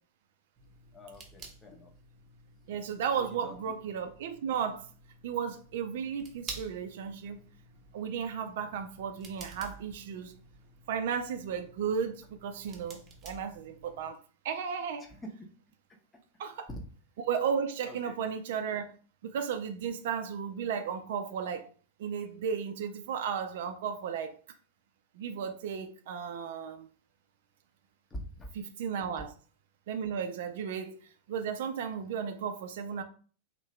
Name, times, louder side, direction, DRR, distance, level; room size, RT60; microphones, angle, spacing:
sound 1, 0.6-14.1, right 4 dB, 25° right, 0.7 m, -51 dB
voice 1, 0.9-1.9 3.2-3.6 15.0-15.5 16.7-16.8 17.9-18.1 28.1-28.5, equal, 15° left, 0.8 m, -44 dB
voice 2, 2.7-4.9 5.2-7.4 7.9-10.4 10.9-14.2 14.4-15.1 16.4-16.7 17.3-21.7 22.0-24.4 25.1-26.9 28.5-29.3 29.9-33.0, right 7 dB, 55° right, 0.4 m, -34 dB
2.9 x 2.7 x 3.1 m
figure-of-eight pair, 90°, 0 cm